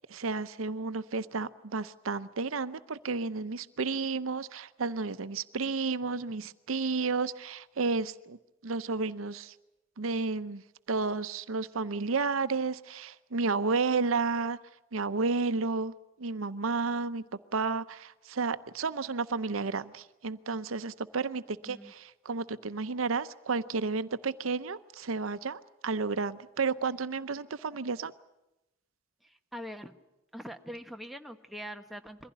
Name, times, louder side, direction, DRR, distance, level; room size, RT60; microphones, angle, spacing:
voice 1, 0.1-8.4 8.6-9.5 10.0-14.6 14.9-15.9 16.2-17.2 17.5-28.1, right 4 dB, 80° right, 14 dB, 0.7 m, -32 dB
voice 2, 21.2-21.9 29.2-29.9 30.3-32.3, equal, ahead, 5 dB, 1.0 m, -43 dB
22.5 x 15.5 x 10.0 m, 0.97 s
head